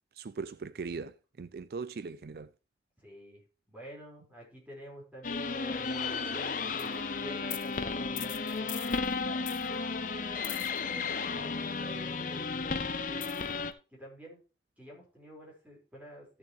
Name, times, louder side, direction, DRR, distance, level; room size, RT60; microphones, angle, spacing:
voice 1, 0.2-2.5, right 4 dB, 60° right, 0.4 m, -40 dB
voice 2, 3.0-3.4 3.7-13.3 13.6-14.4 14.8-16.3, equal, 10° right, 4.8 m, -49 dB
sound 1, 5.2-13.7, left 4 dB, 45° left, 0.8 m, -33 dB
14.0 x 6.9 x 3.2 m
head